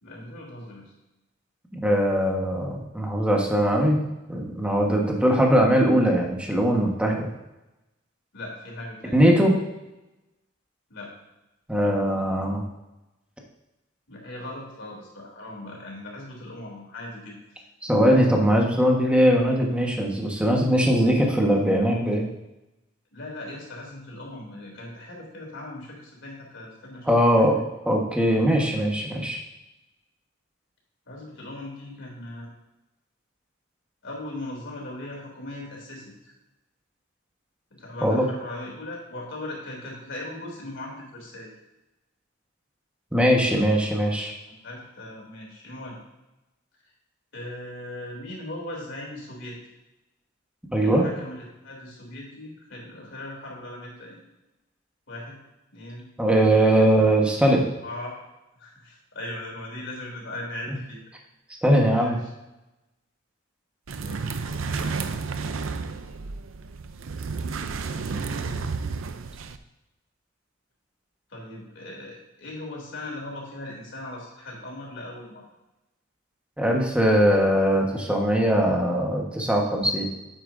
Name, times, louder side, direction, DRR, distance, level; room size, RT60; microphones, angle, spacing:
voice 1, 0.0-0.9 8.3-9.2 10.9-11.1 14.1-17.4 23.1-27.7 31.1-32.5 34.0-36.3 37.7-41.5 44.5-46.0 47.3-49.6 50.8-54.2 55.1-55.4 55.7-56.1 56.5-56.7 57.8-58.1 58.5-61.0 61.9-62.2 64.0-65.1 67.9-68.7 71.3-75.4, left 1 dB, 65° left, -2 dB, 3.0 m, -39 dB
voice 2, 1.7-4.0 4.3-7.3 9.1-9.6 11.7-12.6 17.8-22.3 27.1-27.6 27.8-29.4 38.0-38.2 43.1-44.3 50.7-51.0 56.2-57.6 61.6-62.2 76.6-80.1, equal, 5° right, 0 dB, 1.3 m, -21 dB
sound 1, 63.9-69.6, right 4 dB, 80° right, 0.5 m, -31 dB
9.3 x 8.2 x 2.7 m, 0.97 s
head